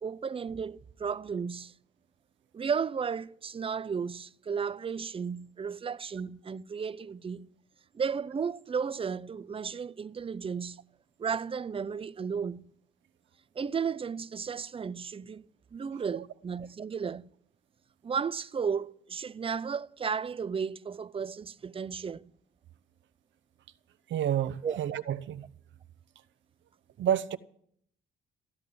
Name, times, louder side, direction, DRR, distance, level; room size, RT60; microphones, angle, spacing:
voice 1, 0.0-1.7 2.5-7.5 7.9-10.8 11.2-12.7 13.6-15.4 15.7-17.3 18.0-22.3 24.6-24.8, right 6 dB, 30° right, 0.5 m, -34 dB
voice 2, 24.1-25.4 27.0-27.4, right 10 dB, 70° right, 0.8 m, -29 dB
15.0 x 11.0 x 7.6 m
cardioid pair, 90°, 20 cm